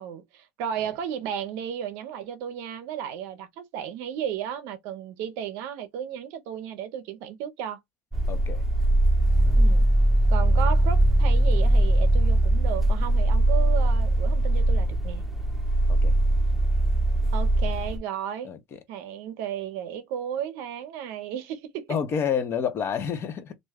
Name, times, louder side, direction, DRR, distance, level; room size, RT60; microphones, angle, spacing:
voice 1, 0.0-7.8 9.6-9.9 10.3-15.2 17.3-18.5 18.9-22.0, right 9 dB, 75° right, 0.6 m, -34 dB
sound 1, 8.1-18.0, right 1 dB, ahead, 0.8 m, -21 dB
voice 2, 8.3-8.6 15.9-16.1 18.4-18.6 21.9-23.5, left 7 dB, 45° left, 0.7 m, -28 dB
2.5 x 2.3 x 3.4 m
supercardioid pair, 85°, 6 cm